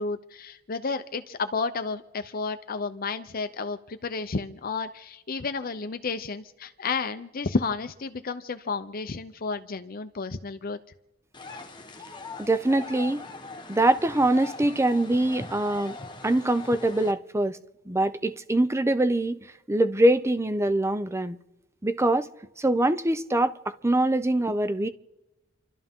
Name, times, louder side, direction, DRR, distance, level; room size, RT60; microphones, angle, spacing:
voice 1, 0.0-10.8, left 4 dB, 45° left, 0.7 m, -31 dB
sound 1, 11.3-17.1, left 3 dB, 25° left, 1.3 m, -41 dB
voice 2, 12.4-13.2 13.7-16.0 16.2-17.6 17.9-19.4 19.7-21.4 21.8-22.3 22.6-24.9, right 1 dB, 15° right, 0.6 m, -23 dB
29.5 x 12.5 x 3.7 m
head